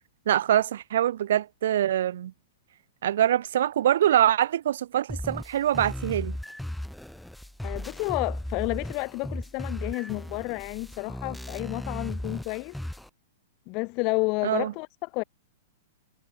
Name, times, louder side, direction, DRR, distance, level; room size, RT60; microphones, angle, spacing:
voice 1, 0.3-2.3 3.0-6.4 14.4-14.7, right 11 dB, 70° right, 2.7 m, -24 dB
sound 1, 5.1-13.1, left 1 dB, ahead, 3.2 m, -36 dB
voice 2, 7.6-12.8 13.7-15.2, left 28 dB, 45° left, 1.5 m, -31 dB
hypercardioid pair, 125°, 0 cm